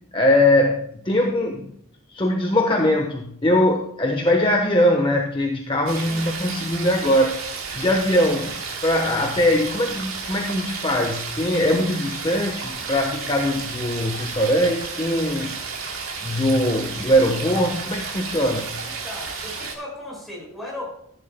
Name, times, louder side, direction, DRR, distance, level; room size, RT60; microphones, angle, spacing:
voice 1, 0.1-1.7 2.1-7.4 7.7-15.5 16.2-18.8, left 1 dB, 25° left, 2 dB, 1.1 m, -21 dB
sound 1, 5.9-19.7, right 4 dB, 85° right, 3.3 m, -32 dB
voice 2, 18.8-20.9, left 1 dB, ahead, -3 dB, 4.8 m, -36 dB
15.0 x 11.5 x 2.2 m, 0.70 s
head